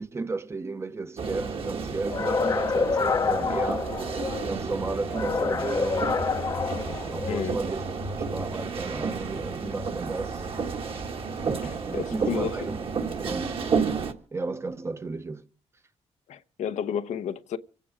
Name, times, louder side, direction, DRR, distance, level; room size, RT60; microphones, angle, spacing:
voice 1, 0.0-3.9 4.4-6.2 7.1-7.8 8.2-10.4 11.5-12.8 13.2-13.5 14.3-15.5, right 3 dB, 25° right, 0.7 m, -33 dB
sound 1, 1.2-14.1, right 5 dB, 55° right, 1.7 m, -31 dB
sound 2, 2.1-4.5 5.1-7.5, left 5 dB, 35° left, 0.7 m, -27 dB
voice 2, 7.3-7.6 11.6-12.6 16.3-17.6, left 8 dB, 85° left, 0.8 m, -31 dB
26.0 x 9.2 x 4.9 m
wide cardioid pair, 135°, 12 cm